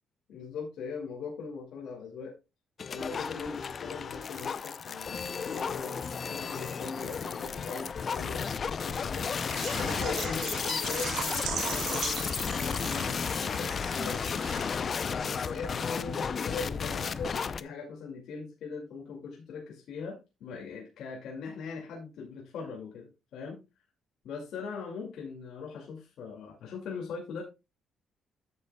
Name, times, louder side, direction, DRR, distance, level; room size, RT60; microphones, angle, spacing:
voice 1, 0.3-2.3 2.9-9.3 9.7-14.8 15.4-23.6 24.2-27.4, left 5 dB, 75° left, -1 dB, 2.3 m, -40 dB
sound 1, 2.8-17.6, left 6 dB, 45° left, 0.5 m, -33 dB
Water / Liquid, 9.4-15.0 15.3-15.4 15.8-15.9, right 7 dB, 85° right, 2.4 m, -39 dB
11.0 x 8.2 x 2.3 m, 0.27 s
cardioid pair, 95°, 0 cm